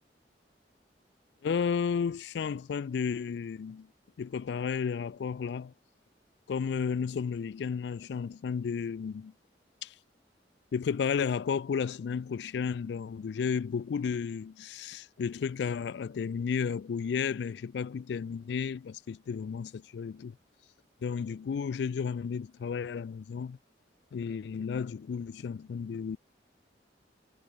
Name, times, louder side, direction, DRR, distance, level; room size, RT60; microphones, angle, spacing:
voice 1, 1.4-3.9 4.2-5.7 6.5-9.3 9.8-9.9 10.7-20.4 21.0-23.6 24.1-26.2, left 6 dB, 70° left, 0.3 m, -33 dB
head